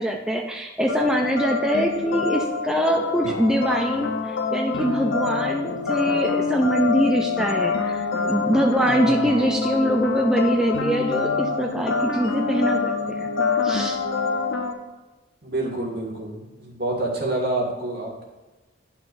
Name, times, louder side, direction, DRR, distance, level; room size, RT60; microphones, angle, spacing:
voice 1, 0.0-13.3 13.6-14.0, equal, 5° right, 0 dB, 0.4 m, -23 dB
sound 1, 0.9-14.7, left 4 dB, 80° left, 0.7 m, -26 dB
voice 2, 15.4-18.2, right 2 dB, 55° right, -3 dB, 1.9 m, -27 dB
10.5 x 5.7 x 2.6 m, 1.1 s
head